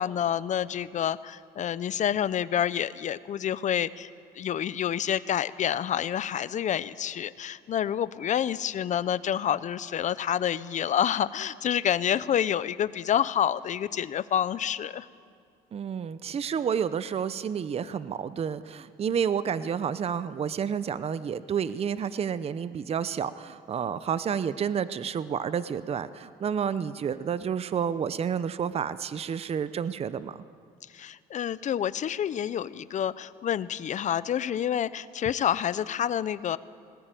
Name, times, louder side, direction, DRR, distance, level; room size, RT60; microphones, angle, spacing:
voice 1, 0.0-4.1 4.3-15.1 30.9-36.6, left 9 dB, 45° left, 16 dB, 0.7 m, -28 dB
voice 2, 15.7-30.4, right 7 dB, 35° right, 14 dB, 0.7 m, -30 dB
19.0 x 19.0 x 9.1 m, 2.3 s
cardioid pair, 110°, 17 cm